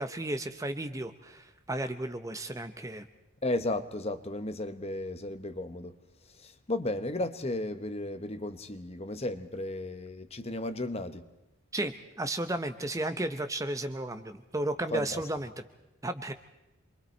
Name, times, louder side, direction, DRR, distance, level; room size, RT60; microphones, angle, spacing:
voice 1, 0.0-3.0 11.7-15.5 16.0-16.3, right 1 dB, 15° right, 9 dB, 0.7 m, -34 dB
voice 2, 3.4-6.0 6.4-11.3 14.9-15.2, left 2 dB, 30° left, 11 dB, 0.9 m, -34 dB
28.0 x 23.0 x 4.4 m, 0.96 s
head